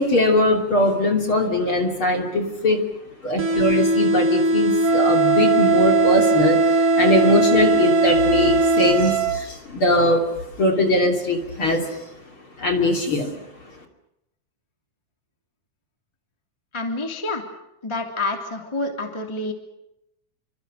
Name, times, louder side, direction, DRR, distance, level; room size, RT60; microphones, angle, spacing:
voice 1, 0.0-2.8 3.2-10.2 10.6-11.8 12.6-13.3, left 1 dB, 35° left, 3 dB, 3.2 m, -21 dB
sound 1, 3.4-9.4, equal, 60° right, 0.9 m, -20 dB
Wind instrument woodwind instrument, 4.8-9.5, right 13 dB, 75° right, 3.9 m, -22 dB
voice 2, 16.7-17.5 17.8-19.5, left 2 dB, 10° left, 4 dB, 2.2 m, -28 dB
29.5 x 25.5 x 6.5 m, 0.86 s
omnidirectional pair, 4.9 m